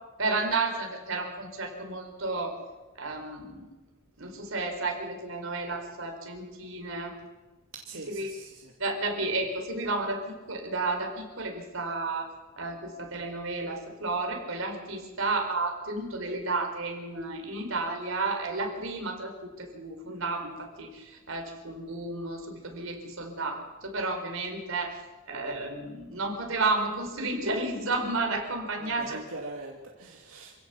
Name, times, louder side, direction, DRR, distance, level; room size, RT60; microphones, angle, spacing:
voice 1, 0.2-2.5 3.0-3.6 4.2-7.1 8.1-8.3 8.8-12.3 12.6-19.3 19.6-25.0 25.3-29.2, right 3 dB, 65° right, 3 dB, 4.6 m, -32 dB
voice 2, 7.7-8.7 28.8-30.5, right 2 dB, 85° right, 0 dB, 2.5 m, -42 dB
27.5 x 16.5 x 7.2 m, 1.2 s
head